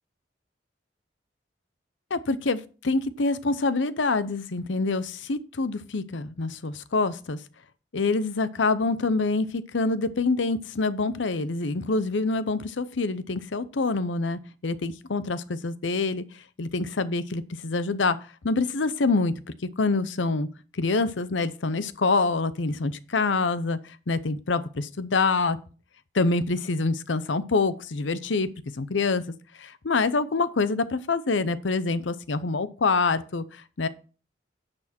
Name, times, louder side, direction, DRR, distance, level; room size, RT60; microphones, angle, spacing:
voice 1, 2.1-7.4 7.9-16.2 16.6-18.2 18.4-19.3 19.8-20.5 20.7-23.8 24.1-25.6 26.1-28.5 28.8-29.2 29.6-33.9, left 3 dB, 85° left, 15 dB, 0.7 m, -26 dB
10.5 x 6.2 x 4.3 m, 0.37 s
head